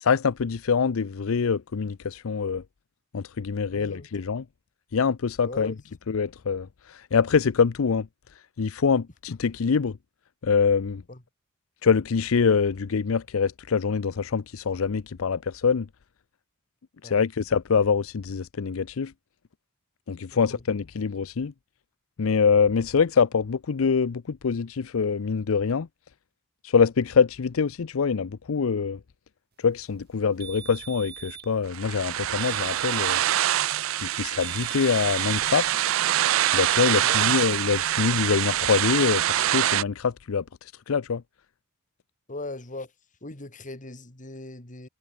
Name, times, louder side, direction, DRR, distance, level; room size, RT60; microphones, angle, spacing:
voice 1, 0.0-2.6 3.1-4.4 4.9-5.7 6.1-8.1 8.6-10.0 10.4-11.0 11.8-15.9 17.0-19.1 20.1-21.5 22.2-25.9 26.6-29.0 29.6-33.2 33.9-35.7 36.5-40.4 40.9-41.2, left 5 dB, 85° left, 0.5 m, -24 dB
voice 2, 3.7-4.1 5.4-5.8 11.1-11.2 17.0-17.2 20.3-20.6 36.8-37.2 42.3-42.9 43.2-44.9, left 2 dB, 40° left, 2.8 m, -39 dB
sound 1, 30.4-31.5 32.4-33.5 34.4-35.5 36.4-37.5, right 10 dB, 55° right, 4.2 m, -40 dB
sound 2, 31.7-39.8, right 12 dB, 75° right, 0.4 m, -25 dB
head